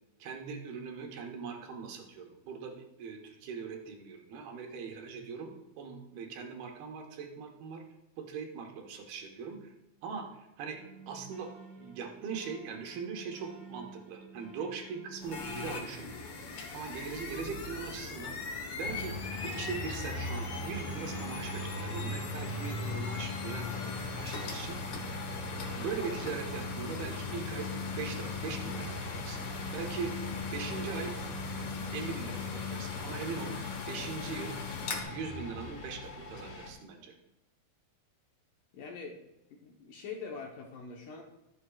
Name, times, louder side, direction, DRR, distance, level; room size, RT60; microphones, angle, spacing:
voice 1, 0.2-7.8 8.2-9.7 10.0-10.8 11.1-11.5 11.8-16.1 16.5-18.3 18.7-24.8 25.5-29.4 29.7-30.1 30.5-31.1 31.9-33.6 33.9-34.5 35.1-37.1, right 5 dB, 75° right, 2 dB, 3.1 m, -41 dB
sound 1, 10.7-15.7, right 3 dB, 20° right, 2.2 m, -51 dB
sound 2, 15.2-35.0, left 4 dB, 85° left, 1.2 m, -40 dB
sound 3, 18.8-36.7, left 3 dB, 50° left, 2.3 m, -41 dB
voice 2, 38.7-39.2 39.5-41.2, left 5 dB, 70° left, 0 dB, 2.3 m, -43 dB
22.0 x 8.2 x 2.4 m, 0.93 s
omnidirectional pair, 4.6 m